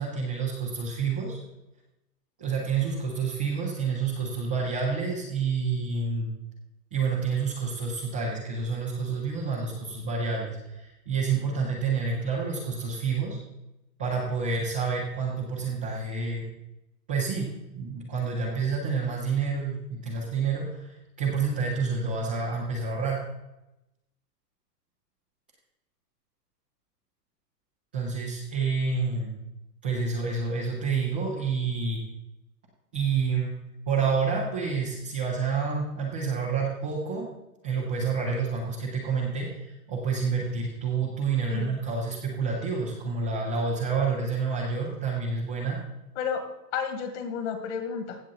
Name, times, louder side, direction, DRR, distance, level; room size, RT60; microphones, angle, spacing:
voice 1, 0.0-1.4 2.4-6.3 6.9-13.4 14.0-16.4 17.1-23.2 27.9-29.3 29.8-32.0 32.9-33.5 33.9-37.3 37.6-45.8, right 5 dB, 5° right, -8 dB, 0.3 m, -28 dB
voice 2, 46.2-46.5 46.7-48.2, left 7 dB, 45° left, 7 dB, 1.9 m, -31 dB
16.0 x 7.1 x 3.9 m, 0.92 s
hypercardioid pair, 135°, 50 cm